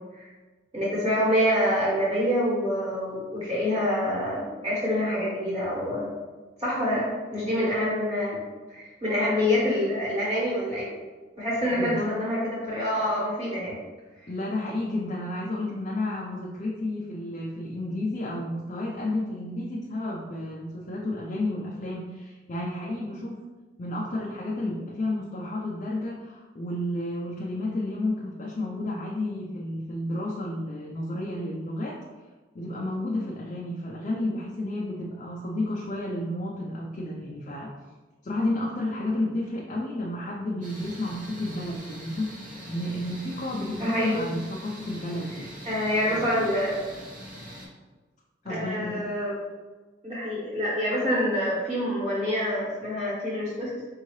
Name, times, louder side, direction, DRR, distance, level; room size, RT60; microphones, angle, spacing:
voice 1, 0.7-6.1 6.6-8.4 8.7-10.9 11.4-13.8 43.8-44.2 45.6-46.8 48.4-49.3 50.0-53.7, equal, 25° right, -8 dB, 1.4 m, -26 dB
voice 2, 11.8-12.1 14.3-23.4 23.8-32.0 32.5-37.7 38.2-42.4 42.7-45.6 46.1-46.3 48.4-49.1, left 1 dB, 40° left, -3 dB, 0.5 m, -31 dB
sound 1, 40.6-47.7, equal, 45° right, 0.9 m, -43 dB
4.6 x 2.7 x 3.1 m, 1.3 s
head